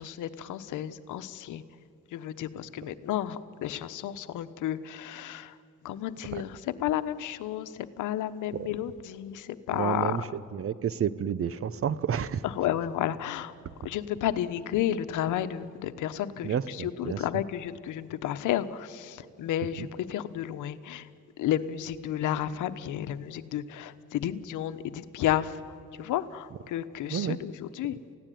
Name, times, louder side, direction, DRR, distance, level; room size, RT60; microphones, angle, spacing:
voice 1, 0.0-1.6 2.1-5.6 5.8-10.2 12.4-13.5 13.8-21.1 21.4-28.0, left 11 dB, 85° left, 12 dB, 1.1 m, -32 dB
voice 2, 9.7-10.2 10.5-12.4 16.4-17.2 19.8-19.9 27.1-27.4, right 8 dB, 50° right, 17 dB, 0.9 m, -30 dB
28.5 x 16.5 x 9.3 m, 2.4 s
cardioid pair, 90°, 30 cm